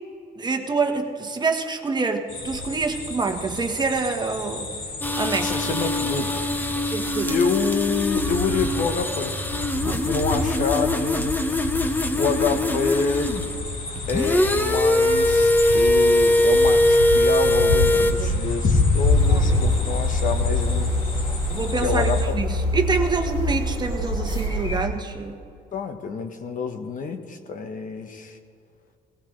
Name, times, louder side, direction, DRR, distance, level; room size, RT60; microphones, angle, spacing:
voice 1, 0.4-4.7 5.1-5.5 6.9-7.3 9.8-10.1 17.9-18.4 19.3-19.7 21.5-25.4, right 4 dB, 25° right, 5 dB, 1.3 m, -27 dB
sound 1, 2.3-22.2, left 2 dB, 65° left, 3.0 m, -28 dB
sound 2, 5.0-13.5 14.0-18.1, left 1 dB, 10° left, 1.0 m, -22 dB
voice 2, 5.4-6.5 7.3-9.4 9.8-11.4 12.1-13.3 14.1-20.9 21.8-22.3 25.7-28.4, left 4 dB, 50° left, 6 dB, 1.3 m, -27 dB
sound 3, 19.0-24.8, left 1 dB, 30° left, 3.9 m, -26 dB
19.0 x 16.5 x 3.3 m, 2.4 s
cardioid pair, 110°, 17 cm